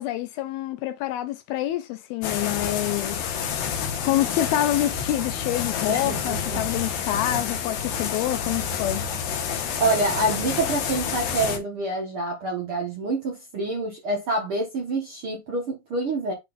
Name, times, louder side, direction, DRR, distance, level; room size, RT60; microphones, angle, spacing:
voice 1, 0.0-3.2 4.0-9.1, left 13 dB, 85° left, 2.1 m, -27 dB
sound 1, 2.2-11.6, left 7 dB, 70° left, 2.6 m, -29 dB
voice 2, 5.9-6.6 9.8-16.3, right 2 dB, 75° right, 1.2 m, -27 dB
10.5 x 3.8 x 2.6 m
omnidirectional pair, 5.0 m